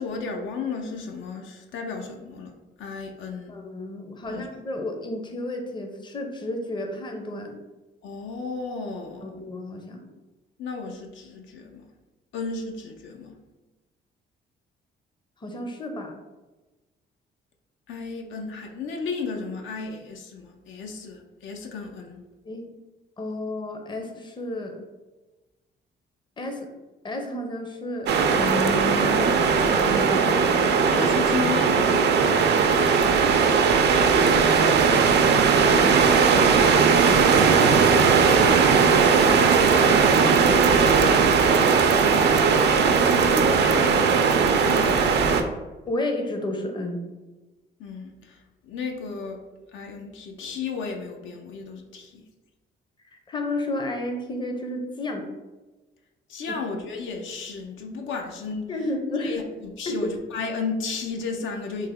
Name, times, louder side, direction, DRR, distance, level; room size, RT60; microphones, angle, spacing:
voice 1, 0.0-3.5 4.3-4.5 8.0-9.3 10.6-11.9 12.3-13.4 17.9-22.2 30.9-32.8 40.3-41.6 43.1-45.5 47.8-48.4 48.6-49.4 49.7-52.2 56.3-58.7 59.2-61.9, left 4 dB, 75° left, 2 dB, 0.5 m, -34 dB
voice 2, 3.5-7.6 9.2-10.1 15.4-16.2 22.4-22.7 23.2-24.8 26.4-26.7 27.0-30.6 35.4-36.1 45.9-47.0 53.3-55.3 56.5-56.6 58.7-59.4 59.9-60.0, left 1 dB, 25° left, 4 dB, 0.5 m, -32 dB
sound 1, 28.1-45.4, right 5 dB, 60° right, 0.4 m, -18 dB
3.2 x 2.1 x 3.6 m, 1.2 s
cardioid pair, 90°, 20 cm